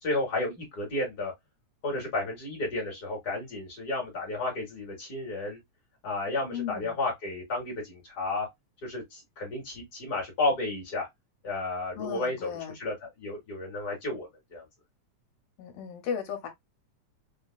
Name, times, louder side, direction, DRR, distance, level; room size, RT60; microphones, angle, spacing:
voice 1, 0.0-1.3 1.8-5.6 6.0-8.5 8.8-11.1 11.4-14.6, left 2 dB, 35° left, 2.2 m, -32 dB
voice 2, 6.5-6.9 12.0-12.8 15.6-16.5, left 7 dB, 70° left, 1.8 m, -35 dB
4.6 x 2.8 x 2.2 m
omnidirectional pair, 3.4 m